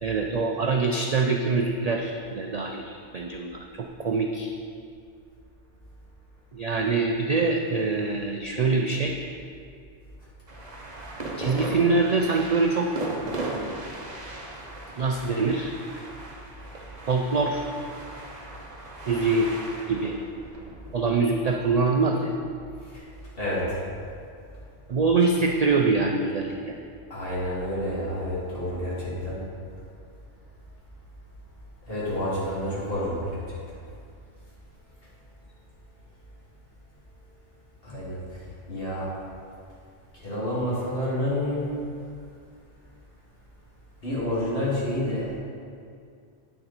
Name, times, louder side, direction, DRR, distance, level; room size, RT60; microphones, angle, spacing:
voice 1, 0.0-4.5 6.5-9.1 11.4-13.0 15.0-15.7 17.1-17.6 19.1-19.5 19.9-20.1 20.9-22.3 24.9-26.7, right 3 dB, 55° right, 2 dB, 0.4 m, -24 dB
sound 1, 10.5-21.9, right 2 dB, 40° right, 1.0 m, -37 dB
voice 2, 23.4-23.8 27.1-29.4 31.9-33.8 37.8-38.4 38.7-39.1 40.2-41.6 44.0-45.3, left 1 dB, 50° left, -8 dB, 2.7 m, -29 dB
8.9 x 6.7 x 4.3 m, 2.3 s
omnidirectional pair, 1.2 m